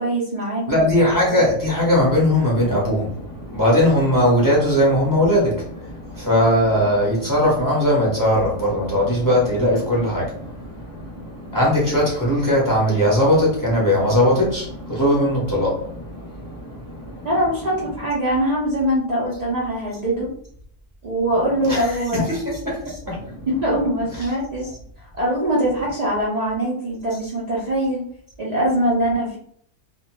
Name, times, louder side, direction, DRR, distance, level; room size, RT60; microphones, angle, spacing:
voice 1, 0.0-0.8 17.2-20.3 21.0-22.3 23.5-24.7 25.1-28.0 28.4-29.4, right 1 dB, 65° right, -6 dB, 0.4 m, -22 dB
voice 2, 0.7-17.3 21.7-23.4 24.2-24.3, left 1 dB, 20° left, -5 dB, 0.7 m, -20 dB
2.5 x 2.2 x 3.0 m, 0.64 s
omnidirectional pair, 1.6 m